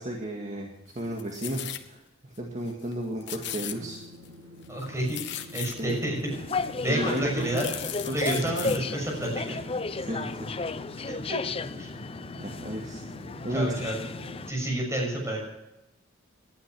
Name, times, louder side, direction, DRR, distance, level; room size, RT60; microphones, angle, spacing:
voice 1, 0.0-4.0 5.8-6.0 6.9-7.6 8.0-8.8 10.0-10.5 12.4-13.0 13.4-13.9, right 1 dB, 35° right, 0 dB, 2.0 m, -33 dB
sound 1, 0.9-1.9 2.3-2.4 2.7-2.9 3.2-4.3 4.6-6.0 6.7-6.8 7.1-8.8 9.2-9.3, left 11 dB, 60° left, 1.2 m, -38 dB
sound 2, 3.8-14.4, left 1 dB, 80° right, 2.4 m, -48 dB
voice 2, 4.7-6.3 6.8-7.6 8.1-9.6 11.3-11.4 11.8-11.9 13.5-14.0 14.5-15.5, right 1 dB, 15° right, -1 dB, 6.5 m, -30 dB
sound 3, 6.3-14.5, left 3 dB, 25° left, 0.5 m, -34 dB
19.0 x 11.5 x 6.2 m, 0.92 s
head